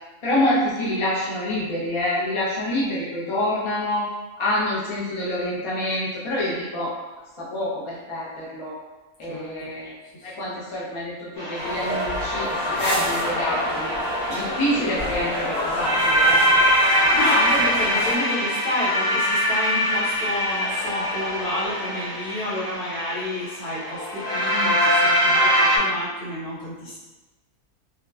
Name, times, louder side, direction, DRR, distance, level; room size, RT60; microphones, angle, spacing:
voice 1, 0.2-4.1 4.4-6.9 7.4-8.8 9.2-9.9 10.2-13.9 14.3-16.5 24.5-24.7, left 1 dB, 50° left, -7 dB, 0.3 m, -27 dB
sound 1, 11.4-25.8, equal, 20° left, 0.7 m, -23 dB
sound 2, 11.5-18.2, left 1 dB, 20° right, 1.0 m, -29 dB
voice 2, 16.8-27.0, left 1 dB, 75° left, -8 dB, 1.5 m, -30 dB
2.9 x 2.1 x 2.3 m, 1.1 s
omnidirectional pair, 1.6 m